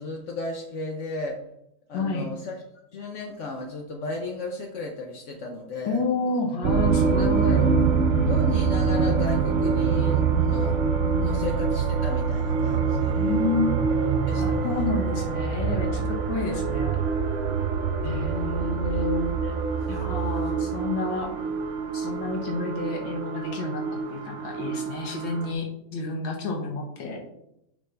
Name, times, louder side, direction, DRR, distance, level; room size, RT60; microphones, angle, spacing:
voice 1, 0.0-1.4 1.9-2.5 2.9-6.0 7.0-7.8 8.3-10.7 11.2-13.4 14.3-14.9 20.6-20.7 21.1-21.3, left 3 dB, 60° left, 1 dB, 0.8 m, -35 dB
voice 2, 1.9-2.3 5.9-7.8 11.0-11.5 13.2-13.8 14.3-17.0 18.0-19.5 19.9-21.3 21.9-23.8 24.1-25.7 25.9-27.3, left 3 dB, 90° left, 0 dB, 2.1 m, -30 dB
sound 1, 6.6-25.5, right 5 dB, 70° right, 0.7 m, -25 dB
7.4 x 5.3 x 3.3 m, 0.79 s
omnidirectional pair, 2.1 m